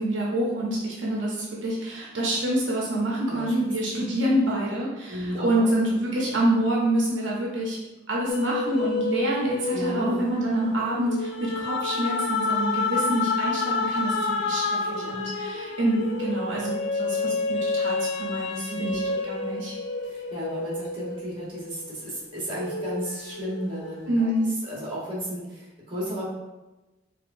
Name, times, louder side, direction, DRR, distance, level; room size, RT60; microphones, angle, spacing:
voice 1, 0.0-7.8 8.1-19.0 19.3-19.7 24.1-24.6, right 1 dB, 75° right, -4 dB, 0.7 m, -27 dB
voice 2, 5.1-5.7 9.7-10.2 15.0-15.2 18.7-19.0 20.0-24.3 24.6-26.3, equal, 30° right, -6 dB, 1.0 m, -34 dB
sound 1, 8.3-22.0 22.5-24.1, left 3 dB, 60° left, 0.4 m, -29 dB
4.6 x 2.2 x 2.5 m, 1.1 s
head